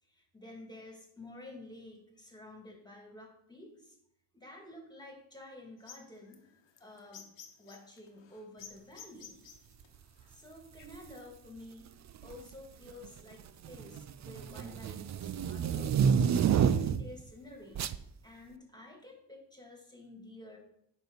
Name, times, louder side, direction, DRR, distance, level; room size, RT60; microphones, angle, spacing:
voice 1, 0.0-4.0 4.3-6.5 6.8-7.3 7.6-9.4 10.2-17.9 18.2-20.6, left 1 dB, 10° left, 1 dB, 2.3 m, -51 dB
sound 1, 5.8-10.9, left 7 dB, 60° left, 1.2 m, -53 dB
sound 2, 10.8-11.1 12.1-12.5 12.9-17.2 17.7-18.0, right 7 dB, 40° right, 0.4 m, -29 dB
8.9 x 5.5 x 4.0 m, 0.74 s
cardioid pair, 80°, 48 cm